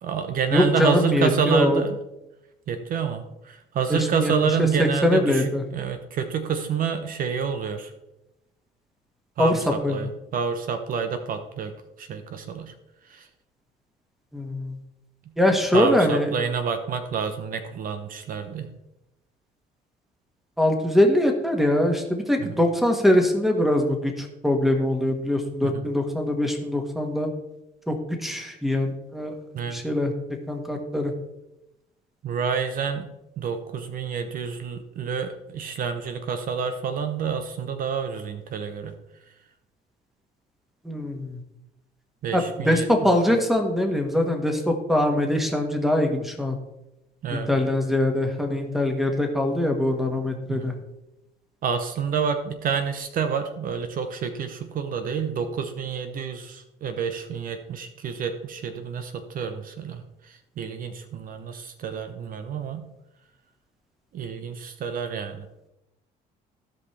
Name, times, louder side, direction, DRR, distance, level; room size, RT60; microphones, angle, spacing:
voice 1, 0.0-1.9 2.7-7.9 9.4-11.7 12.0-12.7 13.1-13.3 15.7-18.7 22.4-22.6 25.6-25.8 29.5-29.8 32.2-33.1 33.4-38.9 42.2-42.9 47.2-47.5 50.5-50.7 51.6-62.8 64.1-65.5, right 6 dB, 55° right, 8 dB, 0.8 m, -28 dB
voice 2, 0.5-1.8 3.9-4.3 4.6-5.6 9.4-9.6 9.8-10.0 14.3-14.8 15.4-16.3 20.6-27.3 27.9-29.4 29.7-30.1 30.5-31.1 40.8-41.4 42.3-46.6 47.3-50.7, left 1 dB, ahead, 3 dB, 1.5 m, -23 dB
16.0 x 5.4 x 3.3 m, 0.92 s
cardioid pair, 110°, 17 cm